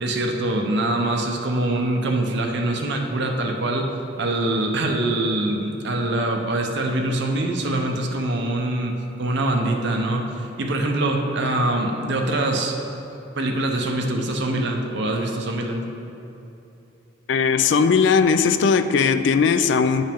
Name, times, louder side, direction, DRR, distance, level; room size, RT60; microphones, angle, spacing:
voice 1, 0.0-3.9 4.2-12.8 13.4-15.9, right 1 dB, 60° right, 2 dB, 0.8 m, -24 dB
voice 2, 17.3-20.1, left 5 dB, 65° left, 10 dB, 0.3 m, -18 dB
10.0 x 5.4 x 3.5 m, 2.8 s
head